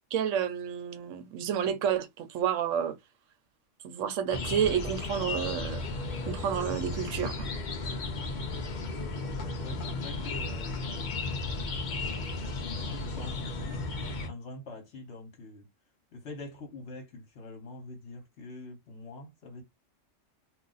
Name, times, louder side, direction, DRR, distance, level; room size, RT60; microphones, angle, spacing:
voice 1, 0.1-3.0 3.8-5.8 6.3-7.5, right 8 dB, 80° right, 0.9 m, -30 dB
sound 1, 4.3-14.3, left 3 dB, 50° left, 0.6 m, -34 dB
voice 2, 9.6-11.2 11.9-13.9 14.3-15.7 16.1-19.6, left 2 dB, 65° left, 1.2 m, -45 dB
2.4 x 2.4 x 3.9 m
omnidirectional pair, 1.3 m